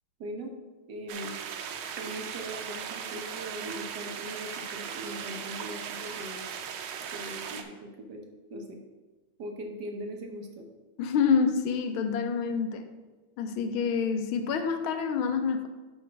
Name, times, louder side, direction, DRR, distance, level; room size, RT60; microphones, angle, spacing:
voice 1, 0.2-0.6 0.9-1.3 2.0-6.5 7.1-8.8 9.4-10.7, right 1 dB, 60° right, 2 dB, 1.5 m, -40 dB
sound 1, 1.1-7.6, right 7 dB, 90° right, 1.5 m, -38 dB
voice 2, 11.0-12.9 13.4-15.7, left 6 dB, 90° left, 7 dB, 1.6 m, -27 dB
11.0 x 4.1 x 4.7 m, 1.2 s
omnidirectional pair, 2.2 m